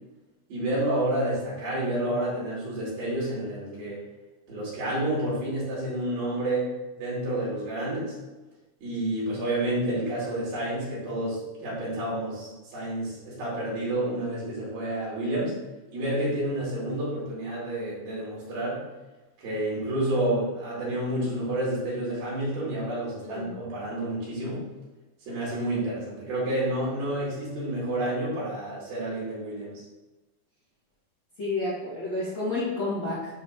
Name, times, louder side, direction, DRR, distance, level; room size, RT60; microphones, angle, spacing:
voice 1, 0.5-4.0 4.5-6.7 7.0-8.1 8.8-15.5 15.9-18.8 19.4-24.6 25.3-29.8, right 1 dB, 70° right, -7 dB, 4.4 m, -29 dB
voice 2, 23.2-23.5 31.4-33.4, left 2 dB, 40° left, -11 dB, 2.0 m, -30 dB
9.9 x 4.0 x 3.7 m, 1.1 s
omnidirectional pair, 4.6 m